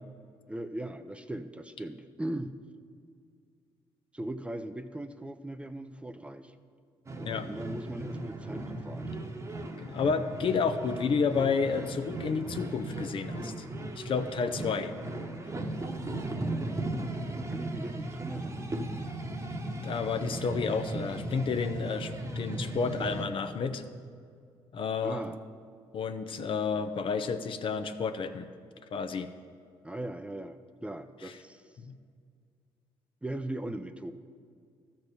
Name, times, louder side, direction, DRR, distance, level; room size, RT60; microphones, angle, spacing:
voice 1, 0.5-2.5 4.1-6.5 7.3-9.2 16.3-17.1 17.5-18.7 25.0-25.4 29.8-31.6 33.2-34.1, right 1 dB, 10° right, 10 dB, 0.5 m, -39 dB
sound 1, 7.1-23.3, right 2 dB, 30° right, 1.1 m, -37 dB
voice 2, 9.8-13.5 13.9-14.9 19.8-23.8 24.7-25.2 25.9-28.5 28.9-29.3 31.2-31.3 31.8-31.9, left 5 dB, 55° left, 9 dB, 0.6 m, -31 dB
13.0 x 4.5 x 6.7 m, 2.2 s
supercardioid pair, 65°, 11 cm